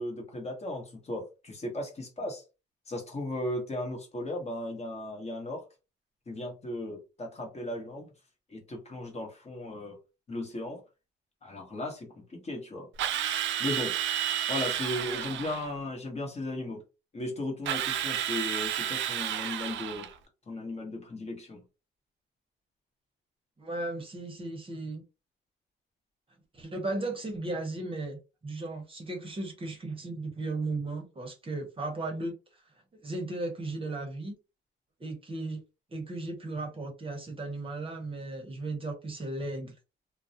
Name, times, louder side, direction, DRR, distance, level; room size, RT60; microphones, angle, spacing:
voice 1, 0.0-2.4 2.9-5.6 6.3-8.1 8.5-10.0 10.3-10.8 11.4-12.9 13.6-14.0 14.5-16.8 17.1-20.1 20.5-21.6, left 1 dB, 35° left, 1.0 m, -36 dB
Drill, 13.0-15.7 17.7-20.1, right 10 dB, 70° right, 0.4 m, -31 dB
voice 2, 23.6-25.0 26.5-32.4 32.9-34.3 35.0-35.6 35.9-39.7, right 2 dB, 25° right, 0.8 m, -36 dB
2.2 x 2.1 x 2.7 m
cardioid pair, 90°, 20 cm